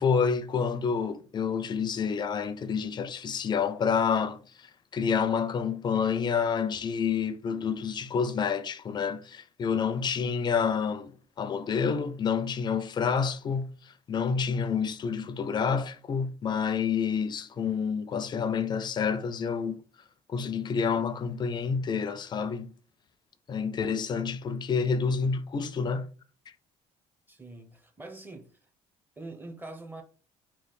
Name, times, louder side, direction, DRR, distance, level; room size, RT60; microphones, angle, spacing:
voice 1, 0.0-19.8 20.3-22.7 23.5-26.1, left 6 dB, 35° left, 0.4 m, -28 dB
voice 2, 27.3-28.6 29.2-30.0, right 2 dB, 15° right, 0.8 m, -44 dB
3.1 x 2.3 x 4.0 m
cardioid pair, 95°, 13 cm